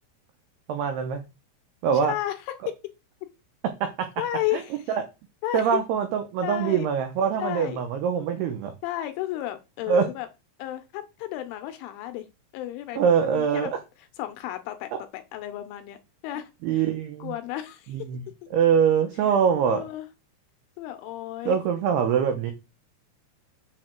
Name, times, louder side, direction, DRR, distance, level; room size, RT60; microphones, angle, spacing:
voice 1, 0.7-1.2 1.8-2.1 3.8-4.1 4.9-5.0 5.5-8.7 9.9-10.0 13.0-13.7 16.6-17.3 17.9-18.2 18.5-19.8 21.5-22.5, right 7 dB, 85° right, 2.2 m, -23 dB
voice 2, 1.9-2.4 2.7-2.8 4.2-5.0 5.4-5.8 6.4-6.9 7.4-7.8 8.8-10.3 10.6-12.3 12.5-13.7 14.2-16.9 17.2-17.9 19.7-20.1 20.8-21.6, left 14 dB, 80° left, 3.1 m, -33 dB
7.1 x 6.6 x 4.5 m
omnidirectional pair, 5.9 m